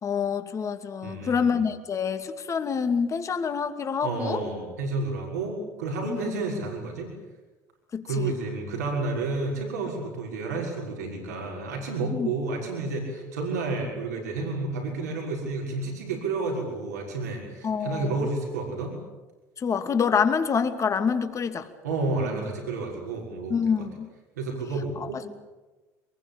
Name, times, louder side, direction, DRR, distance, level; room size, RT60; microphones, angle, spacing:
voice 1, 0.0-4.4 6.1-6.4 7.9-8.3 12.1-12.3 17.6-18.3 19.6-21.7 23.5-24.1 25.0-25.1, left 6 dB, 35° left, 8 dB, 2.6 m, -27 dB
voice 2, 1.0-1.5 4.0-7.1 8.1-18.9 21.8-23.9 24.4-25.3, right 3 dB, 90° right, 0 dB, 6.2 m, -30 dB
23.5 x 21.5 x 8.9 m, 1.2 s
hypercardioid pair, 75°, 9 cm